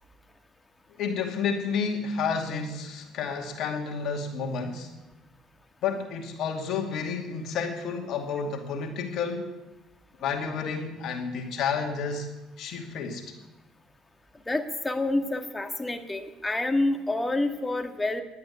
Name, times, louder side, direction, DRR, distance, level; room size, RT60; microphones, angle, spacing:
voice 1, 1.0-4.9 5.8-9.5 10.2-12.3 12.6-13.3, left 5 dB, 60° left, 2 dB, 2.4 m, -30 dB
voice 2, 14.5-18.2, left 2 dB, 15° left, 5 dB, 1.7 m, -28 dB
11.5 x 9.4 x 8.3 m, 1.0 s
hypercardioid pair, 65°, 0 cm